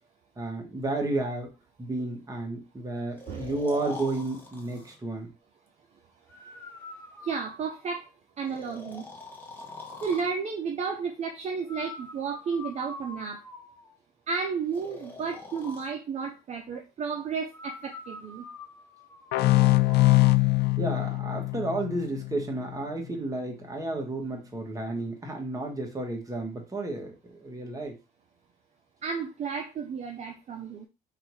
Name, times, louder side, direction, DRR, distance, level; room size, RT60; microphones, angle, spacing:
voice 1, 0.4-1.5 1.8-5.3 20.8-27.9, right 2 dB, 20° right, 1 dB, 1.5 m, -32 dB
Breathing, 3.2-5.0 6.3-8.0 8.5-10.3 11.7-13.9 14.7-15.9 17.5-20.4, left 3 dB, 10° left, 1.2 m, -44 dB
voice 2, 7.2-8.1 8.4-9.0 10.0-13.4 14.3-18.4 29.0-30.9, right 5 dB, 40° right, 3 dB, 0.6 m, -32 dB
sound 1, 19.3-22.8, left 19 dB, 80° left, 0.4 m, -23 dB
3.7 x 2.7 x 4.6 m, 0.27 s
cardioid pair, 110°, 17 cm